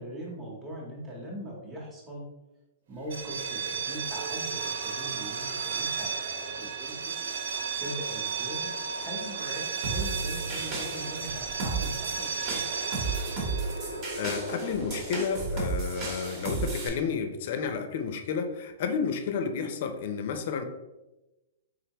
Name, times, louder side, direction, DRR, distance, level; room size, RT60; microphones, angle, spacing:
voice 1, 0.0-2.3 2.9-7.2 7.8-8.7 9.0-9.6 9.9-12.6, equal, 10° right, -4 dB, 0.8 m, -41 dB
sound 1, 3.0-14.7, right 6 dB, 65° right, 0.5 m, -34 dB
sound 2, 9.0-10.3 10.7-10.8 12.1-16.9, right 1 dB, 90° right, 1.1 m, -42 dB
sound 3, 9.8-16.9, right 3 dB, 35° right, 1.0 m, -34 dB
voice 2, 14.2-20.6, left 6 dB, 55° left, 8 dB, 0.5 m, -31 dB
3.7 x 3.3 x 2.9 m, 1.0 s
hypercardioid pair, 155°, 0 cm